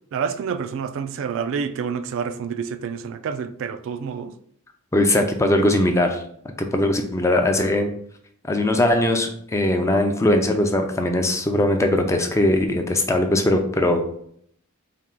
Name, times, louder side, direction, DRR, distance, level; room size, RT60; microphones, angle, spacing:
voice 1, 0.1-4.3, right 6 dB, 60° right, 0.3 m, -28 dB
voice 2, 4.9-6.2 6.6-7.9 8.5-14.0, left 1 dB, 15° left, 0.4 m, -20 dB
4.4 x 2.3 x 3.7 m
head